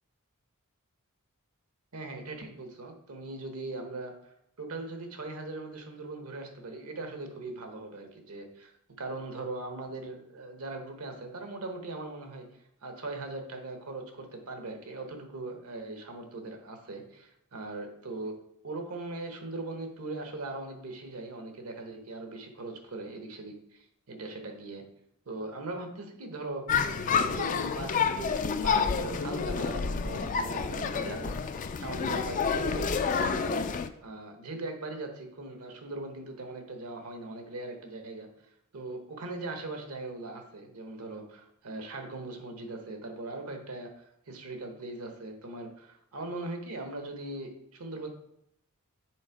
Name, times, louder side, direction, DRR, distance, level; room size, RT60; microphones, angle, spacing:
voice 1, 1.9-4.1 4.6-8.7 9.0-12.5 12.8-18.4 18.6-24.8 25.3-26.7 27.0-33.6 34.0-38.3 38.7-48.1, right 2 dB, 75° right, 5 dB, 1.0 m, -40 dB
sound 1, 26.7-33.9, left 6 dB, 35° left, 0.3 m, -29 dB
6.3 x 3.5 x 4.6 m, 0.76 s
head